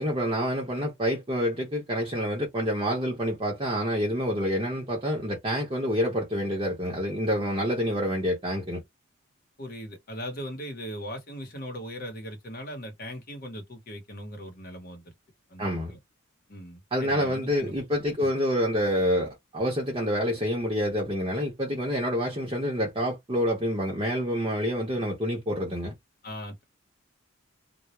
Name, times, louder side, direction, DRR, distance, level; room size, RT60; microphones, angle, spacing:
voice 1, 0.0-8.8 15.6-15.9 16.9-25.9, equal, 25° right, 0.7 m, -27 dB
voice 2, 9.6-15.0 15.5-16.0 16.5-17.7 18.2-18.3 26.2-26.6, equal, 45° left, 0.9 m, -39 dB
2.2 x 2.0 x 2.9 m
head